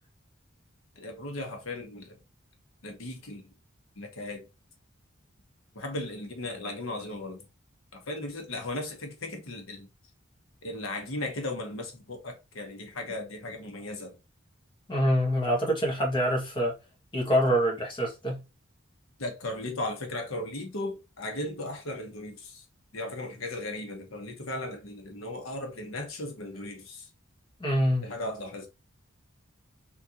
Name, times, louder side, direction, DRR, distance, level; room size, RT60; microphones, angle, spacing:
voice 1, 1.0-2.2 2.8-3.5 4.0-4.5 5.7-7.5 7.9-9.9 10.6-14.2 19.2-22.6 22.9-27.1 28.0-28.7, left 2 dB, 85° left, 1.2 m, -36 dB
voice 2, 14.9-16.7 17.1-18.4 27.6-28.1, equal, 25° left, 1.6 m, -25 dB
4.5 x 3.7 x 2.8 m
head